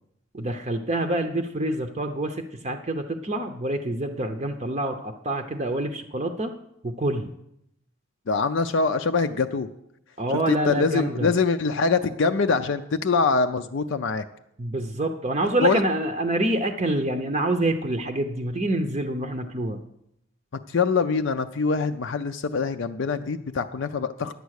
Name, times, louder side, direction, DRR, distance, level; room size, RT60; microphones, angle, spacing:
voice 1, 0.3-6.5 6.8-7.3 10.2-11.3 14.6-19.8, right 1 dB, 30° right, 5 dB, 0.6 m, -26 dB
voice 2, 8.3-9.7 10.5-14.2 15.6-15.8 20.7-24.3, left 4 dB, 65° left, 7 dB, 0.5 m, -24 dB
11.0 x 8.1 x 6.4 m, 0.78 s
head